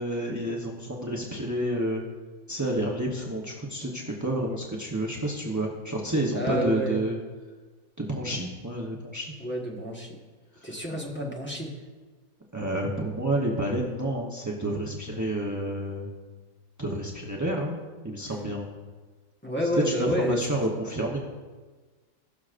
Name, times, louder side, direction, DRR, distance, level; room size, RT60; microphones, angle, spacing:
voice 1, 0.0-2.0 2.5-7.2 8.0-9.3 12.5-16.1 16.8-17.8 18.0-18.7 19.8-21.2, right 1 dB, 25° right, -2 dB, 0.4 m, -29 dB
voice 2, 6.3-7.0 9.4-10.1 10.6-11.7 18.3-18.4 19.4-20.4, equal, 5° left, -2 dB, 1.1 m, -29 dB
19.0 x 6.4 x 2.5 m, 1.4 s
omnidirectional pair, 2.0 m